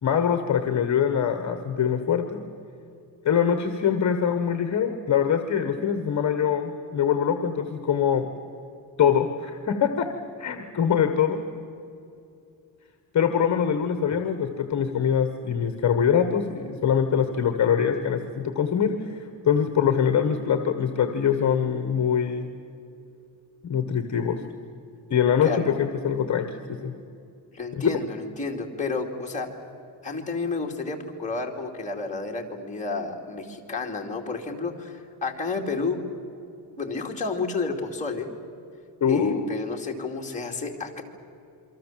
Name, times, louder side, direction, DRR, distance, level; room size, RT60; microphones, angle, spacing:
voice 1, 0.0-2.4 3.2-8.3 9.0-10.1 10.4-11.4 13.1-22.5 23.6-24.4 25.1-26.9 27.7-27.8 39.0-39.5, left 8 dB, 40° left, 8 dB, 1.5 m, -23 dB
voice 2, 27.5-29.5 30.0-36.0 36.8-38.3 39.1-41.0, left 4 dB, 15° left, 0 dB, 2.9 m, -31 dB
28.0 x 24.0 x 7.6 m, 2.7 s
cardioid pair, 165°, 42 cm